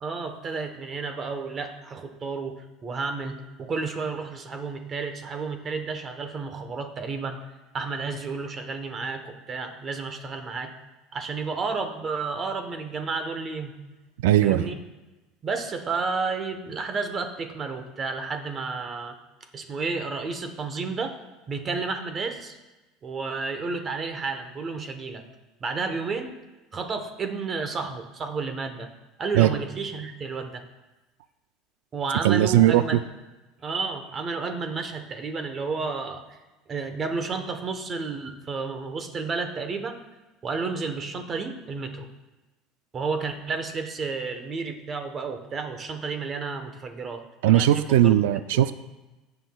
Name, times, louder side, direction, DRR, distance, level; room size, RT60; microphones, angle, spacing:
voice 1, 0.0-2.6 2.8-7.4 7.7-10.7 11.1-13.7 14.4-14.8 15.4-19.2 19.5-21.2 21.5-22.6 23.0-25.2 25.6-26.3 26.7-28.9 29.2-30.6 31.9-33.0 33.6-36.4 36.7-40.0 40.4-42.1 42.9-48.2 48.5-48.6, right 4 dB, 30° right, 7 dB, 1.0 m, -31 dB
voice 2, 14.2-14.7 29.3-29.5 32.2-33.0 47.4-48.7, right 13 dB, 90° right, 13 dB, 0.3 m, -19 dB
17.0 x 5.9 x 2.3 m, 1.1 s
supercardioid pair, 130°, 0 cm